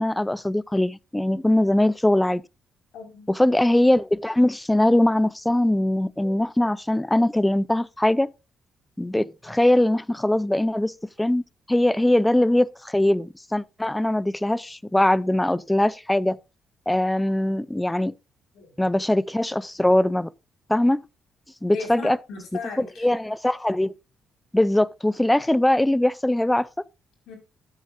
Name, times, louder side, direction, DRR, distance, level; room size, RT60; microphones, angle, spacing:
voice 1, 0.0-2.4 3.3-8.3 9.0-11.4 11.7-16.4 16.9-18.1 18.8-20.3 20.7-21.0 21.6-22.2 22.8-24.0 24.5-26.7, left 1 dB, 10° left, 0.5 m, -21 dB
voice 2, 2.9-3.3 18.5-18.9 21.7-23.1 27.3-27.4, left 4 dB, 80° left, 5.1 m, -37 dB
13.0 x 8.7 x 2.6 m
cardioid pair, 90°, 0 cm